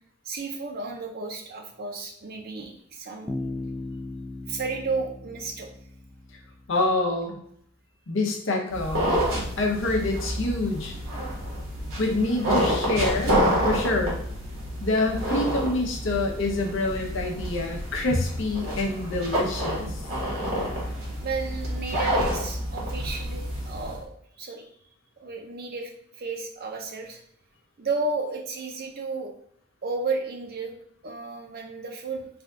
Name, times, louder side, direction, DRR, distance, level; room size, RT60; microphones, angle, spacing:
voice 1, 0.2-3.4 4.5-5.7 21.2-24.7 25.2-27.2 27.8-29.3 29.8-30.7 31.0-32.3, right 3 dB, 50° right, 3 dB, 0.6 m, -33 dB
Bass guitar, 3.3-7.0, left 2 dB, 5° left, 0.3 m, -37 dB
voice 2, 6.7-7.4 8.1-9.2 9.6-10.9 12.0-14.2 14.8-20.0, left 2 dB, 70° left, 1 dB, 0.7 m, -26 dB
sound 1, 8.7-24.0, equal, 85° right, 1.4 m, -28 dB
3.4 x 2.3 x 3.6 m, 0.68 s
head